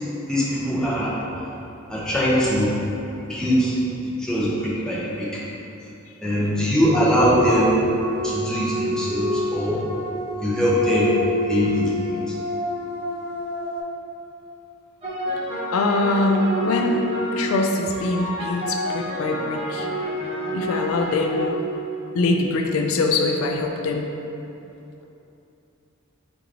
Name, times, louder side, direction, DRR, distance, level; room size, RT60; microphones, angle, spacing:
voice 1, 0.3-1.2 1.9-2.7 3.3-3.7 4.2-5.4 6.2-7.8 8.2-9.8 10.4-11.1 11.4-12.2, equal, 5° left, -7 dB, 0.6 m, -21 dB
sound 1, 7.2-13.8, equal, 75° right, 0.9 m, -28 dB
sound 2, 15.0-22.4, equal, 30° right, 0.8 m, -29 dB
voice 2, 15.7-17.0 17.4-19.9 20.5-21.6 22.1-24.1, left 2 dB, 80° left, 3 dB, 0.3 m, -23 dB
4.6 x 2.5 x 3.2 m, 2.8 s
head